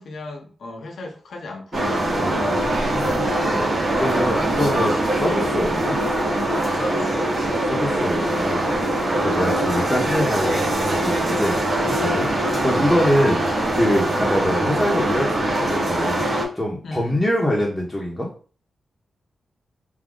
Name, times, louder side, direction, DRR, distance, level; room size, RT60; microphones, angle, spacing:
voice 1, 0.0-3.4 6.7-7.4 16.8-17.2, left 2 dB, 65° left, 3 dB, 0.9 m, -36 dB
sound 1, 1.7-16.4, right 1 dB, 50° right, 1.4 m, -22 dB
voice 2, 2.2-3.7 3.9-6.0 7.7-8.6 9.1-11.6 11.8-16.2 16.5-18.3, equal, 5° left, -4 dB, 0.9 m, -24 dB
3.7 x 2.7 x 3.7 m, 0.40 s
wide cardioid pair, 115°, 0 cm